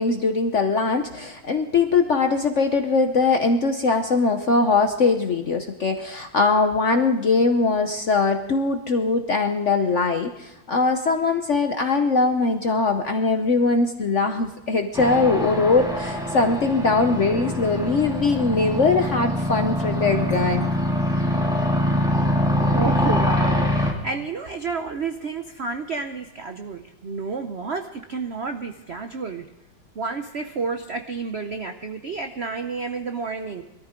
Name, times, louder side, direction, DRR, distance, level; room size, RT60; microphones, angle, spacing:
voice 1, 0.0-20.7, left 3 dB, 60° left, 6 dB, 0.8 m, -21 dB
sound 1, 14.9-23.9, left 1 dB, ahead, 2.3 m, -24 dB
voice 2, 22.6-29.5 29.9-33.6, right 4 dB, 90° right, 6 dB, 0.5 m, -30 dB
21.5 x 13.5 x 3.7 m, 0.99 s
omnidirectional pair, 2.3 m